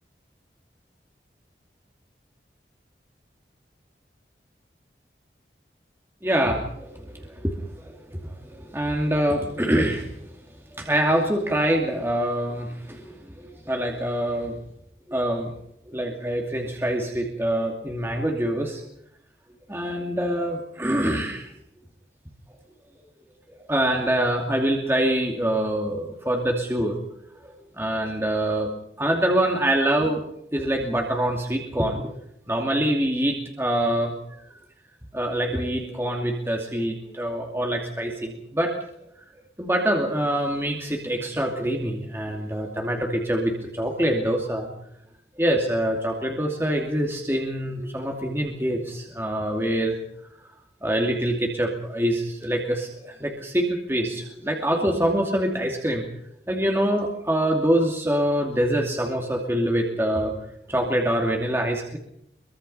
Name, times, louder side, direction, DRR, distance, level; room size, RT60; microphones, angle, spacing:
voice 1, 6.2-10.1 10.7-14.6 15.1-15.5 15.9-18.8 19.7-21.5 23.7-27.0 27.4-28.7 29.0-30.2 30.5-32.2 32.5-34.4 35.1-38.7 39.6-44.7 45.4-50.0 50.8-56.1 56.5-60.4 60.7-62.0, right 1 dB, 15° right, 1 dB, 2.6 m, -25 dB
23.5 x 23.5 x 5.6 m, 0.74 s
head